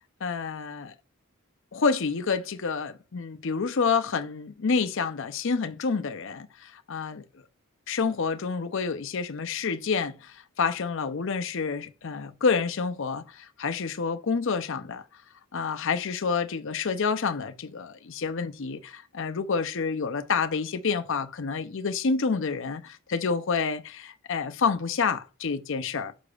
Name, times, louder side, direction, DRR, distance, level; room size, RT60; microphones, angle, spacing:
voice 1, 0.2-0.9 1.7-7.2 7.9-15.0 15.5-26.1, left 5 dB, 55° left, 0.6 m, -28 dB
7.1 x 6.7 x 2.4 m
head